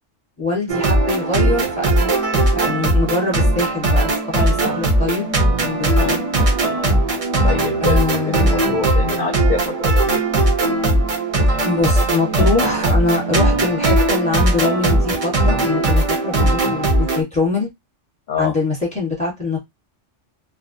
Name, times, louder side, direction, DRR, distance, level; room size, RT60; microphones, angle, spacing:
voice 1, 0.4-5.2 5.6-6.2 7.8-8.7 11.6-17.7 18.4-19.6, left 3 dB, 5° left, 0.8 m, -23 dB
sound 1, 0.7-17.2, right 1 dB, 50° right, 0.4 m, -18 dB
voice 2, 7.4-10.2 18.3-18.5, left 5 dB, 55° left, 0.5 m, -25 dB
2.4 x 2.0 x 2.6 m
omnidirectional pair, 1.3 m